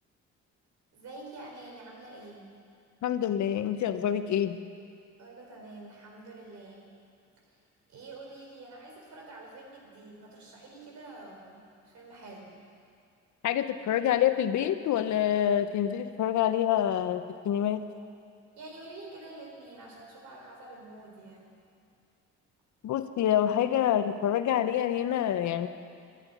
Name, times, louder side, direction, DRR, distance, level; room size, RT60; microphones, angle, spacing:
voice 1, 0.9-2.5 5.2-6.9 7.5-7.6 7.9-12.5 18.6-21.5, right 2 dB, 70° right, -1 dB, 4.3 m, -47 dB
voice 2, 3.0-4.6 13.4-17.8 22.8-25.7, left 10 dB, 70° left, 10 dB, 0.8 m, -27 dB
11.0 x 11.0 x 9.4 m, 2.4 s
cardioid pair, 90°, 30 cm